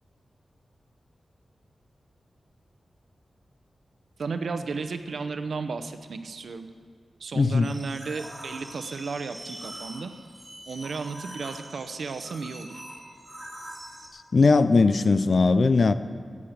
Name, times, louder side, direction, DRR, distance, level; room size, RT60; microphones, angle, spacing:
voice 1, 4.2-6.7 7.2-10.1 10.6-12.8, right 4 dB, 65° right, 9 dB, 0.7 m, -34 dB
voice 2, 7.3-7.8 14.1-15.9, left 4 dB, 45° left, 13 dB, 0.5 m, -20 dB
sound 1, 7.6-14.1, right 1 dB, 10° right, 2.2 m, -43 dB
15.0 x 8.5 x 6.6 m, 2.2 s
wide cardioid pair, 175°, 0 cm